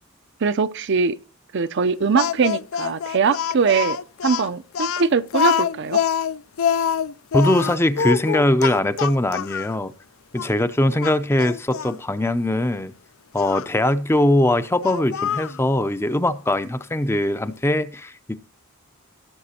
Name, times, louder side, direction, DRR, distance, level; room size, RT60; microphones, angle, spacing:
voice 1, 0.4-1.2 1.5-6.0, right 5 dB, 55° right, 0.6 m, -21 dB
Speech, 2.2-9.7 10.4-10.5 11.0-11.9 13.4-13.7 14.8-15.6, left 8 dB, 65° left, 0.4 m, -25 dB
voice 2, 7.3-9.9 10.3-12.9 13.3-18.4, left 1 dB, 10° left, 0.5 m, -21 dB
16.0 x 7.1 x 2.8 m
head